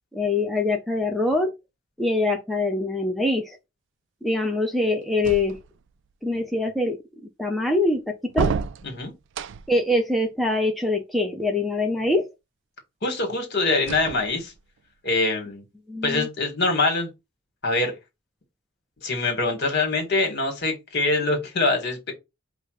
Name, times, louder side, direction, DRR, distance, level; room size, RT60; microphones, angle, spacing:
voice 1, 0.1-1.5 2.0-3.6 4.2-5.6 6.2-7.0 7.4-8.5 9.7-12.3 15.9-16.3, left 2 dB, ahead, 0.5 m, -24 dB
sound 1, 5.2-6.0 8.3-9.9 13.8-14.8, right 6 dB, 60° right, 0.3 m, -30 dB
voice 2, 13.0-14.5 15.0-15.6 16.0-17.1 17.6-17.9 19.0-22.1, left 3 dB, 55° left, 1.6 m, -24 dB
5.0 x 2.1 x 4.7 m
head